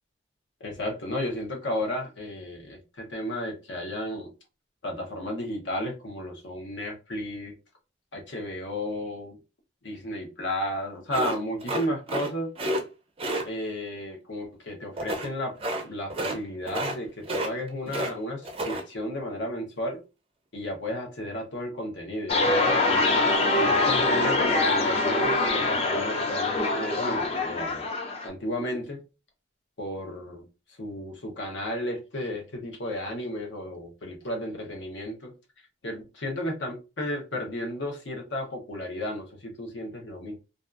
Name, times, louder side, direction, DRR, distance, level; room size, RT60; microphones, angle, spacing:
voice 1, 0.6-4.3 4.8-7.5 8.1-9.4 9.8-12.5 13.4-15.5 15.8-20.0 20.5-23.1 23.6-27.9 28.2-29.0 29.8-30.4 30.8-35.3 35.8-40.4, left 1 dB, 75° left, 0.8 m, -33 dB
sound 1, 11.1-12.3 12.6-12.8 13.2-13.4 15.0-15.3 15.6-15.8 16.1-16.4 16.7-17.0 17.2-18.1 18.4-18.8, right 1 dB, 30° right, 0.4 m, -30 dB
sound 2, 22.3-28.3, left 2 dB, 30° left, 0.4 m, -24 dB
2.6 x 2.3 x 2.3 m
head